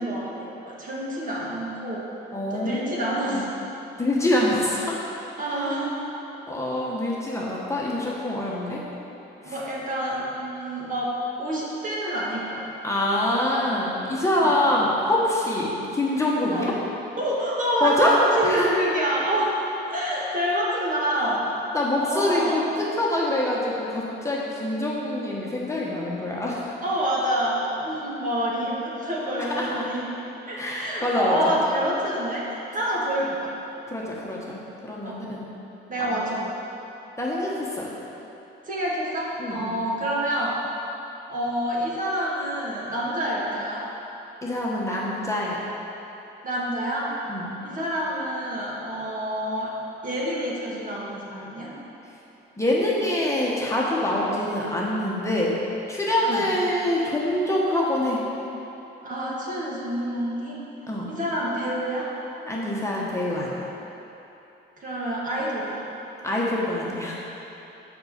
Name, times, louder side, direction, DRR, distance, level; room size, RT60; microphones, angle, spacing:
voice 1, 0.0-2.0 2.5-3.5 5.4-6.1 8.6-8.8 9.4-12.7 16.5-16.7 17.2-19.5 19.9-21.5 22.0-22.6 26.8-30.1 30.5-33.5 35.0-35.2 35.9-36.5 38.6-40.6 41.3-43.8 46.4-47.1 47.6-49.7 50.0-51.7 56.2-56.5 59.0-60.6 61.1-62.1 64.8-65.8, right 1 dB, 40° right, -5 dB, 1.8 m, -27 dB
voice 2, 2.3-2.9 3.2-3.4 4.0-5.0 5.5-5.6 6.5-8.8 9.4-9.6 12.8-16.7 17.8-18.1 18.4-18.7 21.7-26.8 29.4-29.8 30.6-31.6 33.9-35.5 36.0-36.3 37.2-37.9 39.4-39.7 44.4-45.6 47.3-47.6 52.6-55.6 55.9-58.2 60.9-61.1 62.5-63.7 66.2-67.2, left 1 dB, 15° left, -5 dB, 1.2 m, -25 dB
5.9 x 5.4 x 6.7 m, 3.0 s
cardioid pair, 90°, 20 cm